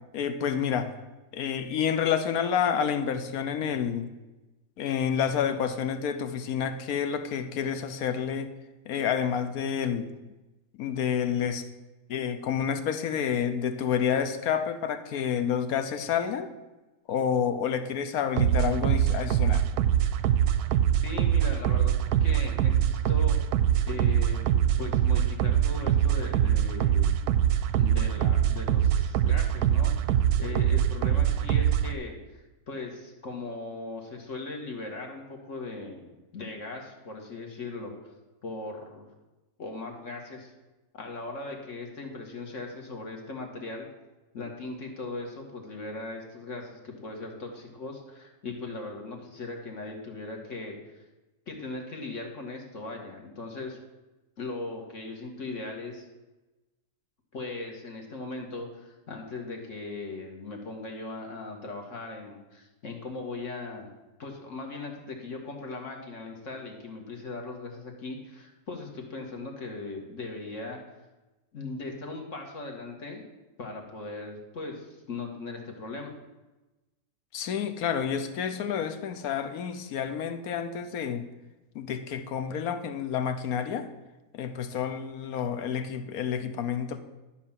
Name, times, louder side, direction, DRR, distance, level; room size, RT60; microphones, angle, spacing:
voice 1, 0.1-1.0 1.3-4.1 4.8-8.5 8.9-10.1 10.8-11.7 12.1-16.5 17.1-19.6 77.3-81.3 81.7-83.9 84.3-87.0, left 8 dB, 65° left, 10 dB, 1.1 m, -29 dB
sound 1, 18.4-31.9, right 10 dB, 70° right, 1.0 m, -24 dB
voice 2, 21.0-23.4 23.9-24.4 24.8-27.2 27.7-38.1 38.4-39.1 39.6-40.5 40.9-43.9 44.3-50.8 51.5-53.8 54.4-56.1 57.3-63.9 64.2-70.8 71.5-73.2 73.6-76.1, left 3 dB, 45° left, 2 dB, 1.7 m, -39 dB
11.5 x 4.4 x 7.2 m, 1.1 s
omnidirectional pair, 1.8 m